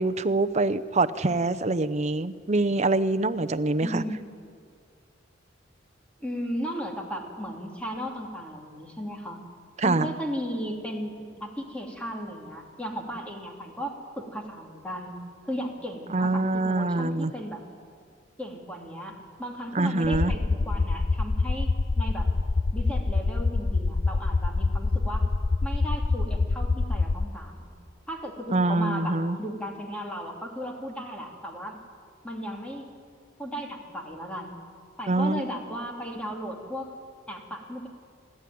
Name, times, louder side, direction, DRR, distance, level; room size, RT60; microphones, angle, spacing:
voice 1, 0.0-4.0 9.8-10.1 16.1-17.3 19.7-20.3 28.5-29.4 35.1-35.4, right 2 dB, 35° right, 12 dB, 0.7 m, -25 dB
voice 2, 3.8-4.2 6.2-9.4 9.8-15.2 15.4-17.6 18.4-21.7 22.0-22.3 22.7-25.3 25.6-27.7 28.1-31.8 32.2-32.8 33.4-34.5 35.0-36.9 37.3-37.9, equal, 5° left, 0 dB, 2.8 m, -35 dB
sound 1, 20.0-27.3, left 3 dB, 40° left, 0.5 m, -25 dB
29.5 x 12.0 x 9.5 m, 2.1 s
head